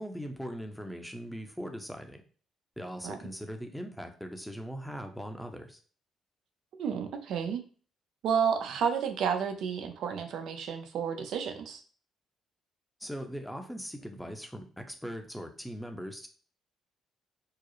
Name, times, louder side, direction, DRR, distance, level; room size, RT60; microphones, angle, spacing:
voice 1, 0.0-2.2 2.8-5.8 13.0-16.3, equal, ahead, 5 dB, 0.7 m, -40 dB
voice 2, 6.8-7.6 8.2-11.8, right 7 dB, 75° right, 6 dB, 0.6 m, -31 dB
4.7 x 2.0 x 3.0 m, 0.41 s
cardioid pair, 90°, 0 cm